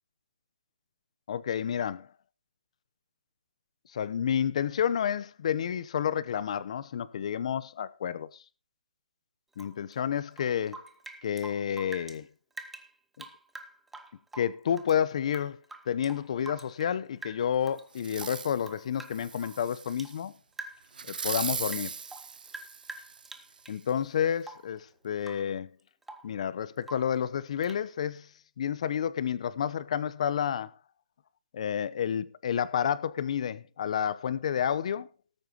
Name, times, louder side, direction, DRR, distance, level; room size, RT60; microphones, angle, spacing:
voice 1, 1.3-2.1 3.9-8.4 9.6-10.8 11.2-12.3 13.2-13.3 14.3-15.6 15.9-20.3 21.0-21.9 23.7-25.7 26.2-28.3 28.6-30.7 31.5-35.1, left 8 dB, 45° left, 0.8 m, -30 dB
Rain / Drip, 9.5-12.2 12.5-15.0 15.3-17.0 17.2-17.9 18.2-20.2 20.5-21.0 21.3-23.8 24.4-24.8 25.2-25.5 25.8-26.4 26.8-27.2 27.6-27.9, right 2 dB, 5° right, 0.7 m, -46 dB
Fireworks, 18.0-18.6 19.1-20.2 20.9-23.3 23.9-24.0, right 6 dB, 75° right, 0.5 m, -38 dB
18.5 x 9.0 x 2.9 m
hypercardioid pair, 160°, 5 cm